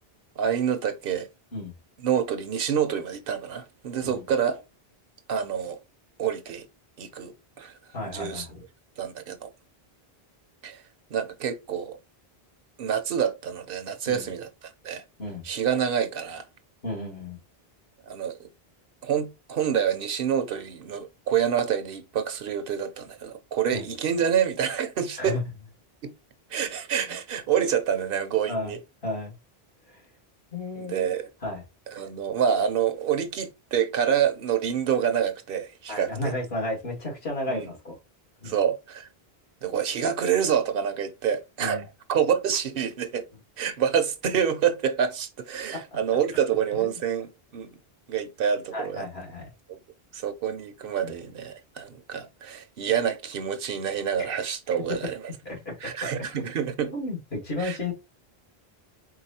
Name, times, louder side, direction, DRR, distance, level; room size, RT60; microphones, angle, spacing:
voice 1, 0.4-1.3 2.0-4.6 5.3-5.8 6.2-6.7 7.0-7.7 8.1-8.5 9.0-9.5 10.6-10.8 11.1-12.0 12.8-14.5 14.8-15.0 15.4-16.4 18.0-18.5 19.0-25.4 26.0-26.1 26.5-28.8 30.8-31.3 31.9-36.3 37.5-37.7 38.4-39.1 39.6-41.8 42.1-43.3 43.6-47.8 48.1-49.0 49.7-49.8 50.1-55.2 55.8-56.9 57.6-57.8, right 8 dB, 65° right, 0.8 m, -27 dB
voice 2, 7.9-8.6 14.1-14.3 15.2-15.5 16.8-17.4 23.7-23.9 25.2-25.4 28.5-28.7 29.0-29.3 29.9-30.0 30.5-31.1 31.4-31.6 35.9-38.0 38.4-38.5 41.6-41.9 45.7-45.8 46.8-46.9 48.7-49.5 51.0-51.1 54.2-54.3 55.4-55.7 56.9-57.9, left 2 dB, 75° left, 2.2 m, -33 dB
4.7 x 3.7 x 2.7 m
omnidirectional pair, 1.1 m